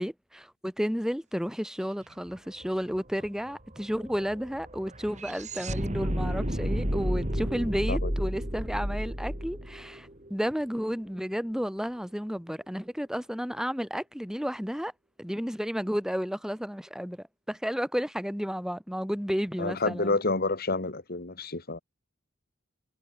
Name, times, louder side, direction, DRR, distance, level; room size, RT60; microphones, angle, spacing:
voice 1, 0.0-14.9 15.2-20.2, equal, 5° right, 5.7 m, -32 dB
sound 1, 2.3-2.4 2.6-10.8, equal, 35° right, 7.5 m, -32 dB
voice 2, 19.6-21.8, left 3 dB, 50° left, 2.2 m, -29 dB
head